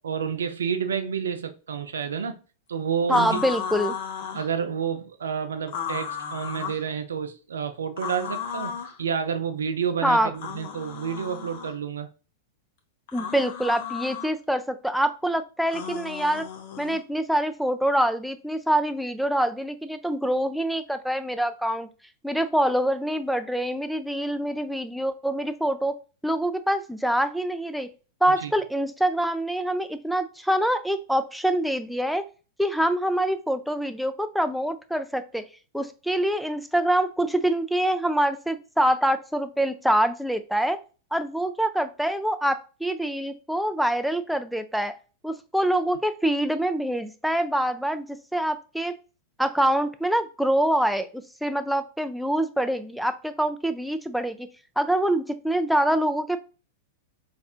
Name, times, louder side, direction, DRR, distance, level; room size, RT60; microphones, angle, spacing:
voice 1, 0.0-2.4 2.7-3.5 4.3-8.7 9.0-12.1 28.3-28.5, right 7 dB, 80° right, 0.4 m, -29 dB
sound 1, 3.1-4.5 5.7-6.8 8.0-9.0 10.3-11.8 13.1-14.3 15.7-17.0, left 8 dB, 60° left, 0.7 m, -34 dB
voice 2, 3.1-4.0 10.0-10.3 13.1-16.4 16.8-21.9 22.2-26.0 26.2-27.9 28.2-32.2 32.6-35.4 35.7-40.8 41.1-44.9 45.2-48.9 49.4-54.5 54.8-56.4, right 1 dB, ahead, 0.4 m, -25 dB
4.2 x 2.5 x 2.4 m
hypercardioid pair, 100°, 0 cm